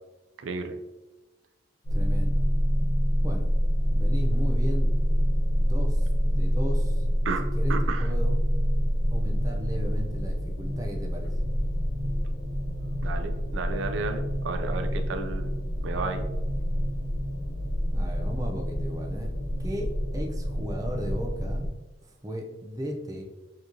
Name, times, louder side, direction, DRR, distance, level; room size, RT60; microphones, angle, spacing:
voice 1, 0.4-0.8 7.2-8.1 13.0-15.5 15.8-16.3, right 3 dB, 85° right, 7 dB, 0.4 m, -33 dB
sound 1, 1.8-21.7, equal, 90° left, 0.8 m, -26 dB
voice 2, 1.9-2.4 3.2-3.5 3.9-4.9 5.6-7.0 7.5-8.3 9.1-11.3 17.9-19.3 19.6-21.7 22.0-23.2, equal, 20° right, 1 dB, 0.5 m, -35 dB
4.6 x 3.0 x 2.7 m, 1.1 s
head